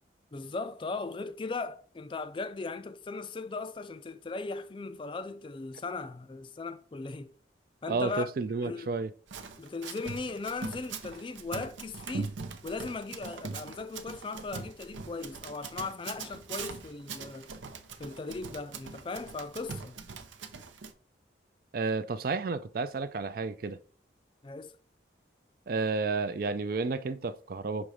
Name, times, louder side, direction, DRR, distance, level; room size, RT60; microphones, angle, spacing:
voice 1, 0.3-7.3 7.8-8.3 8.6-8.9 9.6-12.4 12.6-17.5 18.0-20.0 24.4-24.8, left 3 dB, 25° left, 0.3 m, -38 dB
voice 2, 7.9-9.1 21.7-23.8 25.7-27.9, right 4 dB, 50° right, 0.4 m, -31 dB
Run, 9.3-20.9, right 4 dB, 90° right, 0.7 m, -42 dB
6.1 x 3.1 x 5.0 m
head